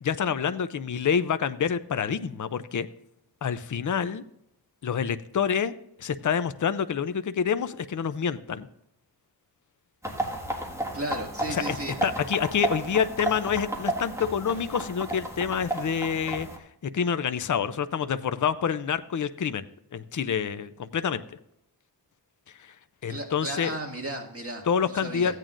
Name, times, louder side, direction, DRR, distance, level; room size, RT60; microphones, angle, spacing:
voice 1, 0.0-2.9 3.4-4.2 4.8-5.7 6.0-8.7 11.5-11.8 12.0-16.5 16.9-19.6 19.9-21.2 22.6-22.7 23.0-23.8 24.7-25.4, left 7 dB, 50° left, 13 dB, 0.5 m, -27 dB
sound 1, 10.0-16.6, right 1 dB, 5° right, 1.7 m, -32 dB
voice 2, 10.9-11.9 23.1-25.4, right 1 dB, 35° right, 1 dB, 2.1 m, -34 dB
15.0 x 9.0 x 2.5 m, 0.76 s
wide cardioid pair, 60°, 41 cm